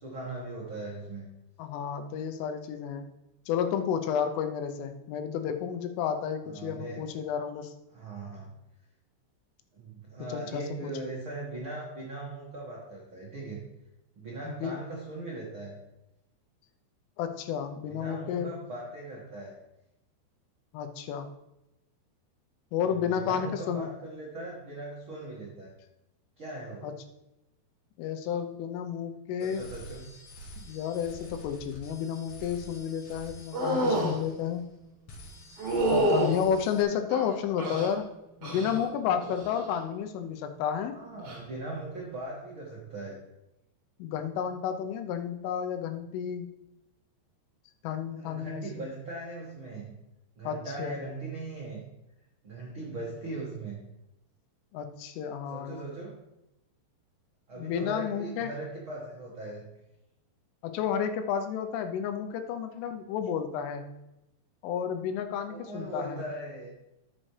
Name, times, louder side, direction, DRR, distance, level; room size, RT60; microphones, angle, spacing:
voice 1, 0.0-1.3 6.4-7.1 7.9-8.5 9.7-13.6 14.1-15.8 17.8-19.5 22.9-25.7 26.4-26.9 29.4-30.1 40.9-43.2 48.2-50.0 50.4-51.8 52.4-53.8 55.5-56.2 57.5-59.7 65.5-66.7, right 2 dB, 75° right, -5 dB, 1.1 m, -39 dB
voice 2, 1.6-3.1 3.5-7.7 10.3-10.9 14.4-14.8 17.2-18.6 20.7-21.3 22.7-23.9 26.8-26.9 28.0-29.7 30.6-34.7 35.9-38.1 38.4-41.0 44.0-46.5 47.8-48.9 50.4-51.0 54.7-55.8 57.6-58.5 60.6-63.9 64.6-66.2, left 8 dB, 85° left, 7 dB, 3.3 m, -31 dB
sound 1, 29.4-34.8 35.1-36.8, equal, 55° left, 4.2 m, -47 dB
sound 2, 33.5-34.2 35.6-36.3 37.1-37.9 38.4-38.8 39.2-39.6 41.2-41.4, right 1 dB, 40° right, 2.6 m, -28 dB
13.0 x 7.6 x 3.3 m, 0.92 s
omnidirectional pair, 5.6 m